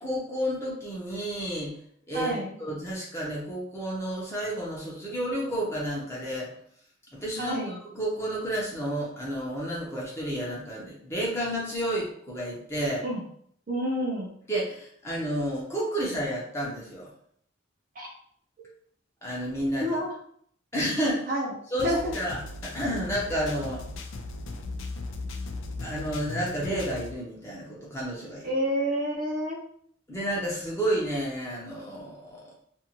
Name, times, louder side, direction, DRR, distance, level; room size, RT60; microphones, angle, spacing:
voice 1, 0.0-1.7 2.1-2.3 2.6-6.5 7.1-13.0 14.5-17.1 19.2-19.9 20.7-21.3 21.7-23.8 25.8-28.5 30.1-32.5, equal, 15° left, -5 dB, 0.7 m, -31 dB
voice 2, 2.1-2.6 7.4-7.8 13.0-13.2 13.7-14.3 18.0-18.1 19.8-20.1 21.3-21.5 21.8-22.2 28.4-29.6, equal, 45° right, -1 dB, 0.5 m, -28 dB
sound 1, 21.8-27.1, left 2 dB, 85° left, 0.4 m, -37 dB
2.6 x 2.3 x 2.9 m, 0.64 s
head